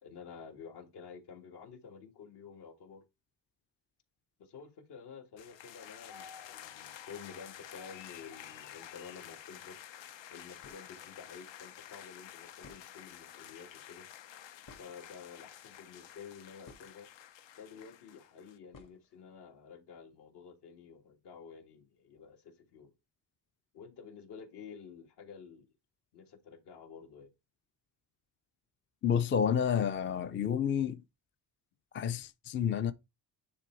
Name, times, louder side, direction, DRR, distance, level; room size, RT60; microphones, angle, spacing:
voice 1, 0.0-3.0 4.4-9.8 10.3-14.1 14.8-17.1 17.6-22.9 23.7-25.7 26.1-27.3, left 6 dB, 65° left, 1.9 m, -51 dB
sound 1, 5.4-18.6, left 10 dB, 80° left, 0.9 m, -50 dB
sound 2, 10.2-10.3 10.5-11.0 12.2-12.3 12.6-13.4 14.7-15.4 16.2-17.1 18.7-19.3, left 3 dB, 50° left, 2.0 m, -57 dB
voice 2, 29.0-31.0 31.9-32.9, left 8 dB, 30° left, 0.4 m, -29 dB
9.7 x 3.5 x 4.5 m
cardioid pair, 165°, 44 cm